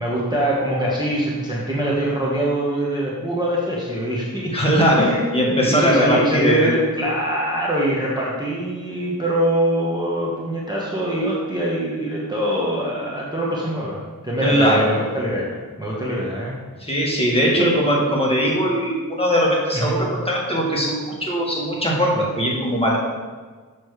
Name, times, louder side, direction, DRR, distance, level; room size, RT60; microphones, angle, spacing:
voice 1, 0.0-16.5 17.5-17.7 19.7-20.0, right 1 dB, 10° right, -5 dB, 1.2 m, -23 dB
voice 2, 4.5-6.7 14.4-14.9 16.8-23.0, equal, 15° left, -4 dB, 1.7 m, -20 dB
6.9 x 6.3 x 3.2 m, 1.4 s
wide cardioid pair, 70°, 36 cm